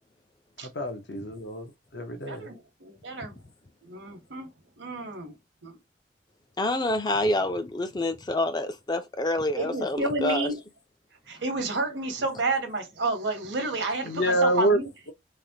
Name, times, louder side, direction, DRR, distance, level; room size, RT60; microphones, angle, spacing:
voice 1, 0.6-2.5 14.0-14.8, right 1 dB, 70° left, 0.7 m, -26 dB
voice 2, 2.1-3.4 3.8-4.5 4.8-5.3 5.6-5.8 9.6-10.6 11.3-14.9, right 2 dB, 80° right, 1.0 m, -30 dB
voice 3, 6.6-10.5, left 1 dB, 20° left, 0.4 m, -27 dB
3.3 x 2.1 x 2.7 m
head